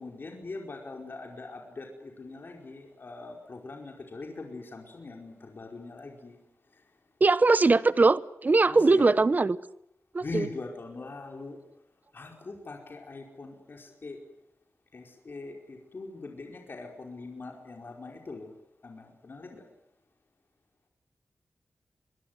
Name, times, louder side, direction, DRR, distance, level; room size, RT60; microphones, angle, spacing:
voice 1, 0.0-6.3 8.7-9.1 10.2-11.6 12.1-14.2 14.9-18.5 18.8-19.6, left 3 dB, 50° left, 2 dB, 5.0 m, -41 dB
voice 2, 7.2-9.6 10.1-10.5, right 3 dB, 40° right, 16 dB, 1.0 m, -21 dB
24.0 x 23.0 x 9.5 m, 0.78 s
wide cardioid pair, 115°, 5 cm